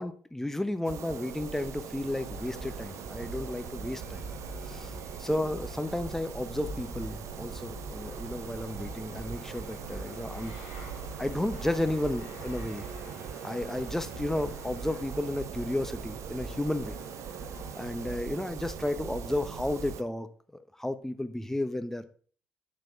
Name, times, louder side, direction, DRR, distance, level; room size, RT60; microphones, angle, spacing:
voice 1, 0.0-4.2 4.6-4.9 5.2-10.6 11.2-12.9 13.4-17.0 17.7-22.1, left 1 dB, 5° left, 11 dB, 0.9 m, -33 dB
sound 1, 0.8-20.0, right 8 dB, 55° right, 0.7 m, -41 dB
Boom, 1.5-4.5, right 1 dB, 90° right, 1.5 m, -58 dB
sound 2, 2.1-18.2, left 2 dB, 70° left, 2.5 m, -46 dB
9.1 x 7.5 x 3.7 m, 0.43 s
figure-of-eight pair, 45°, 6 cm